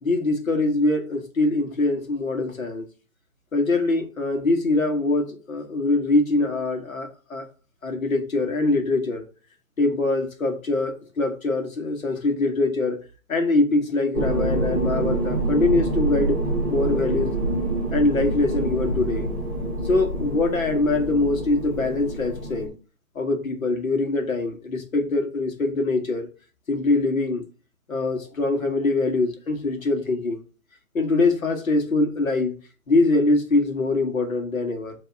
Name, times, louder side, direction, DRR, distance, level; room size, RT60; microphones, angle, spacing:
voice 1, 0.0-2.8 3.5-7.5 7.8-9.2 9.8-13.0 13.3-16.4 16.7-17.3 17.9-19.3 19.8-22.7 23.2-26.3 26.7-27.4 27.9-30.4 30.9-32.5 32.9-34.9, left 2 dB, 70° left, 1.9 m, -23 dB
sound 1, 14.1-22.7, right 2 dB, 5° right, 1.3 m, -26 dB
6.0 x 3.5 x 5.8 m
hypercardioid pair, 180°, 43 cm